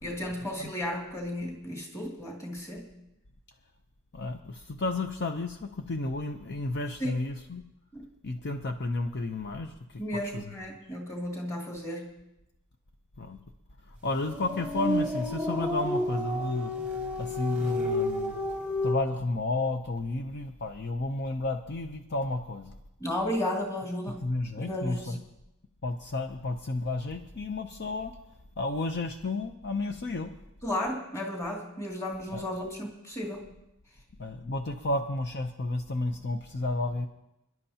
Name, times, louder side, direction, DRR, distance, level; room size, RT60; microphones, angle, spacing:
voice 1, 0.0-2.9 7.0-7.3 7.9-8.1 10.0-12.1 23.0-24.2 24.6-25.2 30.6-33.5, left 1 dB, 15° left, -2 dB, 2.5 m, -34 dB
voice 2, 4.8-7.6 8.2-9.7 10.1-10.2 13.2-13.4 14.0-16.7 17.2-18.3 18.8-22.7 24.2-25.1 25.8-28.1 28.6-30.3 32.3-32.4 34.2-37.1, left 2 dB, 50° left, 6 dB, 0.7 m, -31 dB
sound 1, 14.2-19.0, left 1 dB, 5° right, 1.0 m, -31 dB
27.0 x 11.0 x 2.9 m, 0.88 s
head